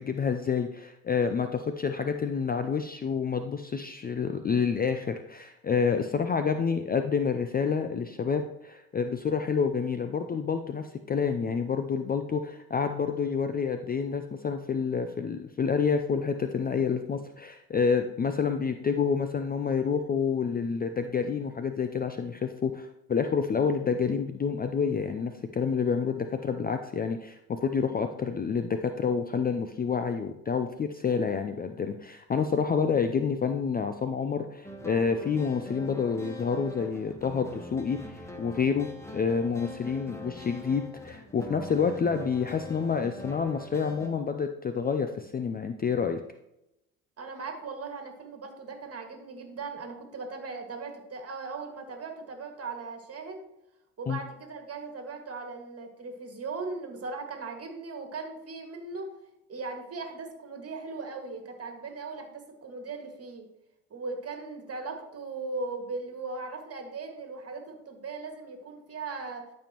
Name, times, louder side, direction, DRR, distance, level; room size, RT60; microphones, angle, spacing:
voice 1, 0.0-46.2 54.1-54.2, left 6 dB, 20° left, 8 dB, 0.5 m, -28 dB
sound 1, 34.6-44.1, left 1 dB, 5° left, 1.2 m, -43 dB
voice 2, 47.2-53.4 54.0-59.1 59.5-63.5 63.9-69.4, right 3 dB, 35° right, 4 dB, 2.0 m, -38 dB
12.0 x 5.4 x 3.0 m, 0.87 s
hypercardioid pair, 65°, 43 cm